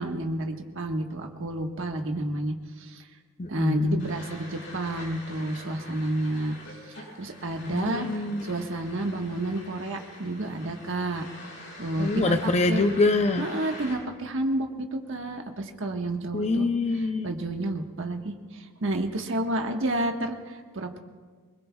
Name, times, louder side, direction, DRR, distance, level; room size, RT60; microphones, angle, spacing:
voice 1, 0.0-3.0 3.5-6.6 6.9-11.3 11.8-12.8 13.4-16.7 17.2-21.0, right 1 dB, 60° right, 3 dB, 1.5 m, -30 dB
voice 2, 3.4-4.0 7.7-8.4 12.0-13.5 16.3-17.3, left 3 dB, 30° left, 7 dB, 0.6 m, -25 dB
sound 1, 4.0-13.9, left 1 dB, 60° left, 6.2 m, -44 dB
27.5 x 21.0 x 2.4 m, 1.5 s
head